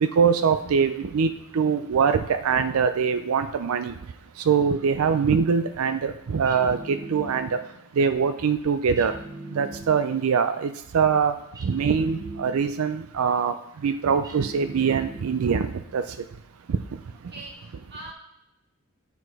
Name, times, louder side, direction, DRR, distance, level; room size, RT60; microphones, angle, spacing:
voice 1, 0.0-3.9 4.5-7.6 8.0-9.1 9.5-11.3 11.6-13.5 13.8-15.7 15.9-16.0 16.7-16.8, right 6 dB, 75° right, 10 dB, 0.4 m, -23 dB
sound 1, 6.4-7.8 8.9-10.3 11.5-12.9 14.2-15.6, right 1 dB, 15° right, 0.8 m, -40 dB
voice 2, 17.1-18.1, right 1 dB, 50° right, -1 dB, 1.7 m, -42 dB
8.0 x 4.7 x 4.8 m, 0.85 s
head